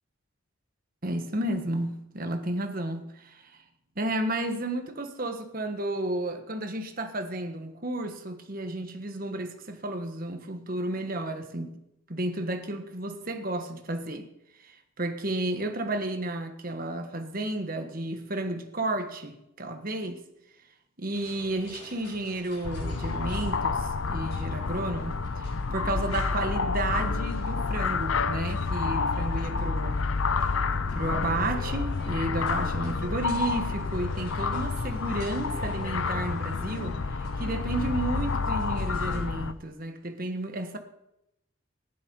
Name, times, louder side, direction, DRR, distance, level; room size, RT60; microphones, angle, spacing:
voice 1, 1.0-3.4 4.0-11.8 12.1-14.3 14.6-20.2 21.0-30.0 30.7-40.8, right 1 dB, 40° right, 1.3 m, -32 dB
sound 1, 21.1-39.3, left 1 dB, 55° left, 7.4 m, -47 dB
sound 2, 22.6-39.5, left 4 dB, 75° left, 0.6 m, -29 dB
15.0 x 11.5 x 5.4 m
head